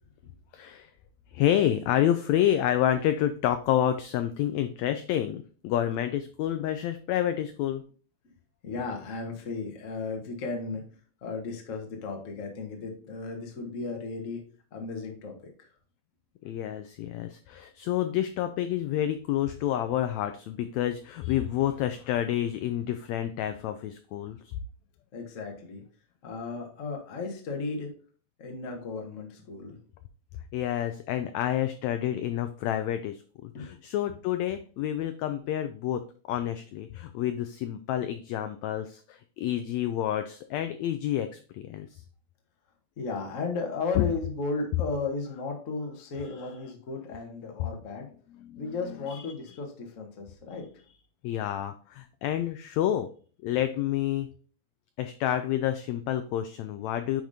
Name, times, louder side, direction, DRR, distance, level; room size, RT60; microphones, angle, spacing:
voice 1, 0.5-0.9 1.3-7.8 16.4-24.6 30.5-42.0 43.9-44.0 48.5-48.6 49.1-49.3 51.2-53.1 53.4-54.3 55.0-57.2, left 11 dB, 85° left, 9 dB, 1.6 m, -29 dB
voice 2, 8.6-10.8 11.2-14.4 14.7-15.7 25.1-25.8 26.2-27.9 28.4-29.8 33.5-33.7 43.0-48.1 48.6-50.7, left 4 dB, 65° left, 2 dB, 0.7 m, -35 dB
9.2 x 5.0 x 2.7 m, 0.41 s
omnidirectional pair, 3.6 m